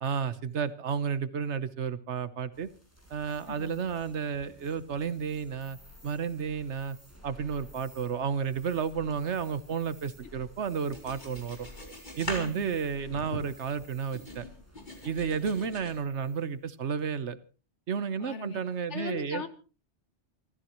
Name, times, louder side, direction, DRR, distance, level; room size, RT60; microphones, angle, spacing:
voice 1, 0.0-2.7 3.1-5.8 6.0-7.0 7.2-11.7 12.2-14.5 15.0-17.4 17.9-19.4, right 6 dB, 80° right, 14 dB, 1.3 m, -32 dB
sound 1, 2.5-16.6, equal, 15° left, 6.7 m, -54 dB
sound 2, 10.9-13.7 14.1-15.9, left 1 dB, 45° left, 4.4 m, -42 dB
voice 2, 12.4-12.8 18.2-18.6 18.9-19.5, left 5 dB, 90° left, 11 dB, 1.7 m, -38 dB
28.5 x 14.0 x 3.1 m, 0.35 s
omnidirectional pair, 1.2 m